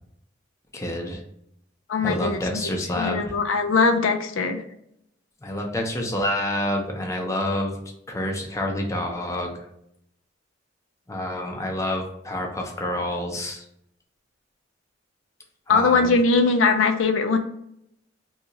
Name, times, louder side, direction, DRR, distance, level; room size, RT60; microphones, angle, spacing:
voice 1, 0.7-1.2 2.0-3.4 5.4-7.8 8.1-9.5 11.1-13.6 15.7-16.2, left 1 dB, 15° left, 1 dB, 0.5 m, -28 dB
voice 2, 1.9-2.4 3.0-4.6 15.7-17.4, left 4 dB, 85° left, 6 dB, 0.4 m, -20 dB
2.8 x 2.3 x 3.9 m, 0.75 s
head